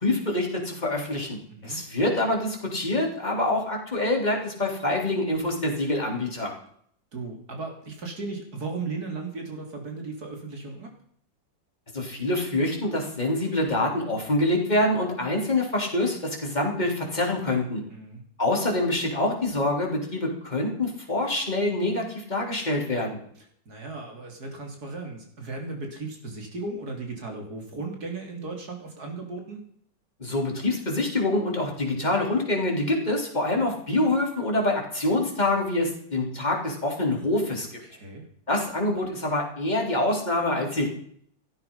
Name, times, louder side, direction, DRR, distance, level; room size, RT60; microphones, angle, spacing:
voice 1, 0.0-6.5 11.9-17.8 18.4-23.2 30.2-37.8 38.5-40.9, left 1 dB, 20° left, 0 dB, 3.9 m, -26 dB
voice 2, 1.5-1.8 7.1-10.9 17.9-18.2 23.7-29.6 37.8-38.3, right 3 dB, 50° right, 2 dB, 3.8 m, -36 dB
15.5 x 13.0 x 5.6 m, 0.63 s
omnidirectional pair, 2.1 m